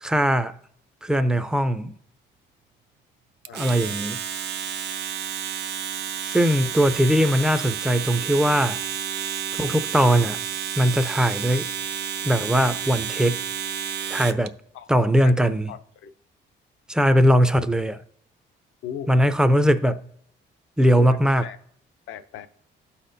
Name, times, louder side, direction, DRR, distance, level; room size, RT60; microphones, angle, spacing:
voice 1, 0.0-0.6 1.0-1.9 3.5-4.2 6.3-8.8 9.6-10.4 10.8-11.7 12.2-13.4 14.1-14.5 14.9-15.7 16.9-18.0 19.1-20.1 20.8-21.5, equal, 5° right, 0.4 m, -20 dB
Domestic sounds home sounds, 3.4-14.5, right 8 dB, 55° right, 0.5 m, -31 dB
voice 2, 3.5-4.0 6.6-6.7 14.7-16.1 18.8-19.1 19.5-19.6 21.0-21.6 22.1-22.5, left 9 dB, 75° left, 0.6 m, -39 dB
12.5 x 4.2 x 2.6 m
cardioid pair, 90°, 20 cm